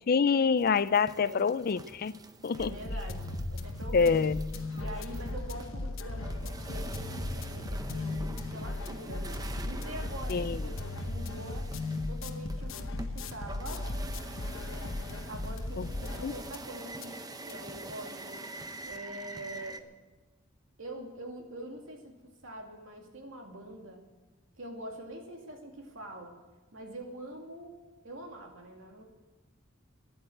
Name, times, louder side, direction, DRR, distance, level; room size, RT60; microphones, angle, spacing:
voice 1, 0.1-2.1 2.4-2.7 3.9-4.4 10.3-10.6 15.8-15.9 16.2-16.3, left 5 dB, 45° left, 0.4 m, -26 dB
sound 1, 0.6-19.8, right 2 dB, 20° right, 0.7 m, -46 dB
voice 2, 1.1-1.5 2.6-4.1 4.7-11.7 12.1-13.9 15.3-18.5 18.9-19.9 20.8-24.0 24.6-26.3 26.7-27.7 28.0-29.0, right 1 dB, 75° right, 2.5 m, -44 dB
sound 2, 2.6-16.7 17.0-17.1 17.5-17.6, left 2 dB, 85° left, 1.0 m, -36 dB
14.5 x 10.5 x 7.8 m
head